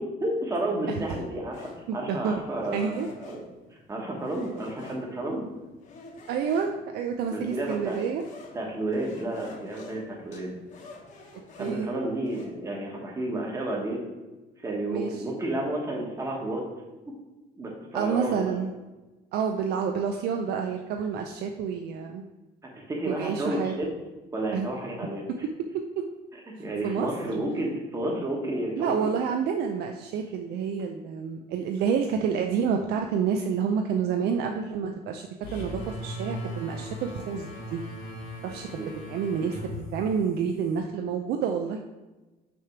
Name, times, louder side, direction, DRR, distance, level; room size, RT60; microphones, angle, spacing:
voice 1, 0.0-3.4 3.9-5.4 7.3-8.0 8.5-10.5 11.6-14.0 14.6-16.6 17.6-18.5 22.7-23.9 24.3-25.2 26.6-29.1 38.8-38.9, right 1 dB, 20° right, -1 dB, 1.2 m, -31 dB
sound 1, 1.5-12.5, left 3 dB, 45° left, 1.1 m, -50 dB
voice 2, 1.9-2.4 2.7-3.1 6.3-8.2 11.6-11.9 14.9-15.2 17.9-18.7 19.3-22.2 23.0-23.7 24.5-24.7 26.0-26.1 26.8-27.1 28.8-37.8 38.4-38.8 39.1-41.8, right 6 dB, 70° right, 4 dB, 0.5 m, -29 dB
sound 2, 35.4-40.8, equal, 80° left, 1.8 m, -38 dB
6.1 x 3.3 x 5.9 m, 1.1 s
cardioid pair, 180°, 17 cm